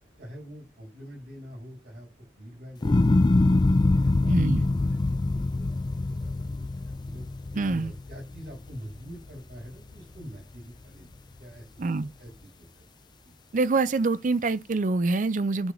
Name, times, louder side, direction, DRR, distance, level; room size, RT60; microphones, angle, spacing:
voice 1, 0.2-2.1 2.4-3.6 3.9-7.3 7.7-11.1 11.4-11.7 12.2-12.8 13.2-13.3, equal, 65° right, 5.1 m, -45 dB
sound 1, 2.8-9.1 9.6-10.2, left 2 dB, 25° left, 0.3 m, -24 dB
voice 2, 4.3-4.6 7.5-7.9 11.8-12.1 13.5-15.7, right 3 dB, 45° right, 0.5 m, -25 dB
10.5 x 3.9 x 3.1 m
head